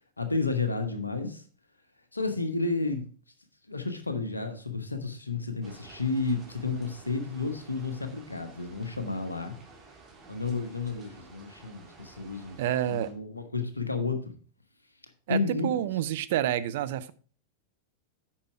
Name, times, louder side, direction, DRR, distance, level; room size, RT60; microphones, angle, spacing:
voice 1, 0.2-1.4 2.1-3.0 3.7-9.6 10.3-12.6 12.9-14.4 15.3-15.9, left 3 dB, 80° left, 8 dB, 1.2 m, -31 dB
sound 1, 5.6-13.1, right 3 dB, 30° right, 2.3 m, -53 dB
voice 2, 12.6-13.1 15.3-17.1, right 12 dB, 55° right, 14 dB, 0.5 m, -28 dB
8.6 x 5.7 x 4.7 m, 0.42 s
figure-of-eight pair, 90°, 0 cm